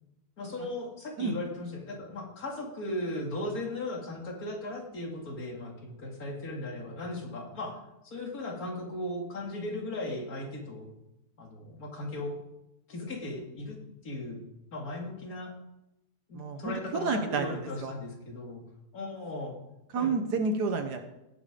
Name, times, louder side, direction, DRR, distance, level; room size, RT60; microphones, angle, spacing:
voice 1, 0.4-10.9 11.4-12.4 12.9-13.8 14.0-14.4 14.7-15.5 16.3-18.6 18.9-19.6 19.9-20.1, left 1 dB, 65° left, 0 dB, 2.6 m, -37 dB
voice 2, 16.3-17.9 19.9-21.0, right 4 dB, 80° right, 5 dB, 1.6 m, -30 dB
17.0 x 5.9 x 4.9 m, 0.91 s
omnidirectional pair, 1.7 m